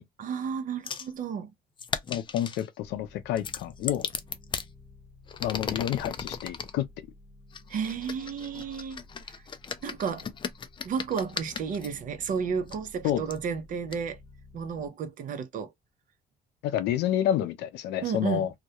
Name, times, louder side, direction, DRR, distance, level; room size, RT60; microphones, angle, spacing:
voice 1, 0.2-1.5 7.7-9.0 9.3-9.4 9.8-10.3 10.8-14.2 14.5-15.7 18.0-18.5, right 6 dB, 50° right, 0.6 m, -32 dB
sound 1, 0.9-1.1 1.8-2.7 3.4-4.7 5.3-6.7 7.5-11.9 12.7-12.8 13.3-13.4 13.9-14.0, left 6 dB, 30° left, 0.4 m, -36 dB
voice 2, 2.1-4.1 5.4-6.9 13.0-13.2 16.6-18.5, left 11 dB, 85° left, 0.5 m, -29 dB
sound 2, 2.8-14.9, left 2 dB, 10° left, 1.0 m, -53 dB
2.3 x 2.1 x 2.7 m
cardioid pair, 110°, 17 cm